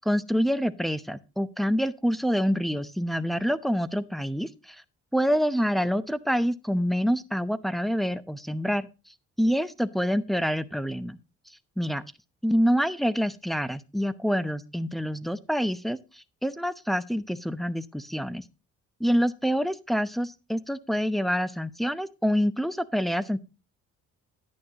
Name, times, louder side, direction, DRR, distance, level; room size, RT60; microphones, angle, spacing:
voice 1, 0.1-4.8 5.1-8.9 9.4-11.2 11.8-12.0 12.4-18.4 19.0-23.4, equal, ahead, 0.8 m, -26 dB
10.5 x 9.2 x 2.9 m
cardioid pair, 90°, 30 cm